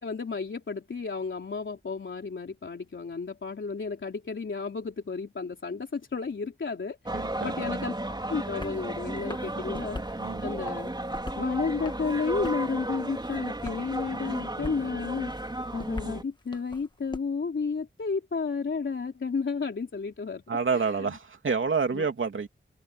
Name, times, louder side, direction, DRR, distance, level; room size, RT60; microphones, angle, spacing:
voice 1, 0.0-7.9 8.3-10.9 11.4-15.3 15.7-20.4 20.7-21.1 21.9-22.1, left 5 dB, 75° left, 3.3 m, -32 dB
sound 1, 7.1-16.2, right 1 dB, 20° right, 4.6 m, -34 dB
voice 2, 7.1-7.9 9.5-9.6 10.2-10.4 20.5-22.5, right 5 dB, 80° right, 2.9 m, -29 dB
sound 2, 8.6-8.8 9.2-10.2 10.6-11.5 11.8-12.7 13.1-13.8 14.1-14.8 15.2-17.2, left 2 dB, 20° left, 1.5 m, -42 dB
wide cardioid pair, 85°, 20 cm